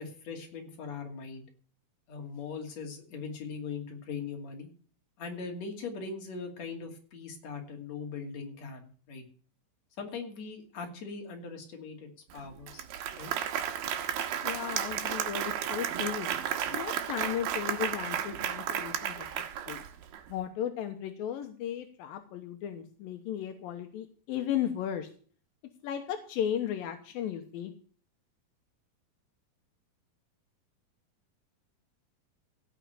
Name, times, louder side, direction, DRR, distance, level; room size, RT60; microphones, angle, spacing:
voice 1, 0.0-1.5 2.1-4.7 5.2-9.2 10.0-12.9 13.1-13.3, left 5 dB, 50° left, 2 dB, 3.6 m, -40 dB
Applause, 12.3-12.4 12.7-20.2, right 10 dB, 90° right, 3.0 m, -33 dB
voice 2, 14.4-16.3 16.7-19.8 20.3-25.1 25.8-27.7, left 10 dB, 80° left, 6 dB, 2.7 m, -35 dB
16.5 x 6.1 x 6.8 m, 0.44 s
omnidirectional pair, 4.1 m